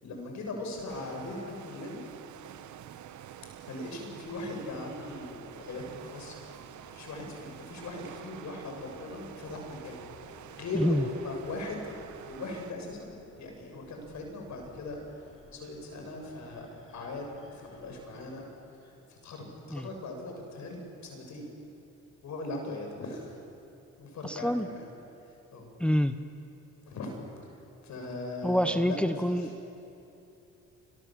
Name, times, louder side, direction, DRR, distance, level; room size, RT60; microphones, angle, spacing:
voice 1, 0.0-2.0 3.7-6.4 6.9-10.0 10.3-11.8 12.3-15.0 15.5-18.5 18.8-21.5 22.2-23.4 24.0-24.9 25.5-25.7 26.9-27.2 27.4-27.5 27.8-29.3, left 2 dB, 65° left, 2 dB, 7.0 m, -39 dB
sound 1, 0.9-12.7, right 10 dB, 75° right, 1.2 m, -48 dB
sound 2, 4.0-18.4, left 2 dB, 45° left, 6.6 m, -57 dB
voice 2, 24.2-24.7 25.8-26.2 28.4-29.7, equal, 5° left, 9 dB, 1.1 m, -27 dB
29.0 x 25.0 x 7.6 m, 2.8 s
cardioid pair, 90°, 30 cm